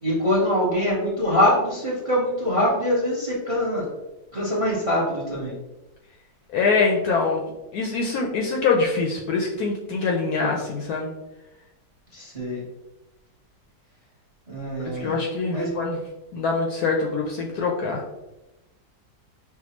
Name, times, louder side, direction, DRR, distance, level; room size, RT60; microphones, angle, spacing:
voice 1, 0.0-3.9 4.3-5.5 12.1-12.6 14.5-15.1 15.5-15.8, left 1 dB, 25° right, -5 dB, 0.7 m, -23 dB
voice 2, 6.5-7.4 7.7-11.1 14.8-16.0 16.3-18.0, left 4 dB, 70° left, 0 dB, 0.9 m, -24 dB
5.7 x 2.3 x 2.9 m, 0.99 s
omnidirectional pair, 2.0 m